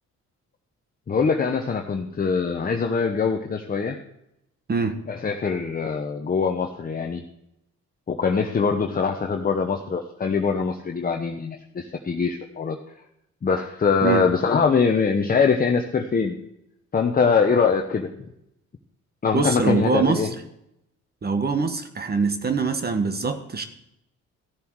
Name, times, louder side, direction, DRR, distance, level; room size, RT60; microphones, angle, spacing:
voice 1, 1.1-4.0 5.1-7.2 8.1-12.8 13.4-16.4 16.9-18.1 19.2-20.3, left 5 dB, 30° left, 3 dB, 0.9 m, -23 dB
voice 2, 19.3-20.3 21.2-23.7, right 4 dB, 30° right, 8 dB, 1.1 m, -23 dB
14.5 x 7.0 x 4.6 m, 0.80 s
cardioid pair, 90°, 30 cm